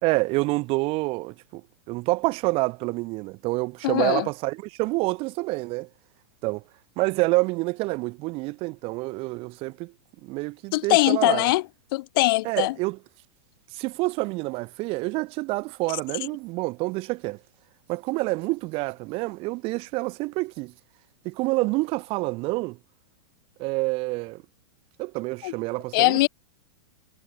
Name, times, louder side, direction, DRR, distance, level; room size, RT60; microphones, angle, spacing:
voice 1, 0.0-5.9 6.4-6.6 7.0-9.9 10.2-11.5 12.4-13.0 13.7-17.4 17.9-20.7 21.2-22.8 23.6-24.4 25.0-26.3, right 23 dB, 45° right, 5.3 m, -27 dB
voice 2, 3.8-4.3 10.7-11.6 11.9-12.7 25.4-25.5 25.9-26.3, left 19 dB, 55° left, 5.1 m, -21 dB
hypercardioid pair, 110°, 14 cm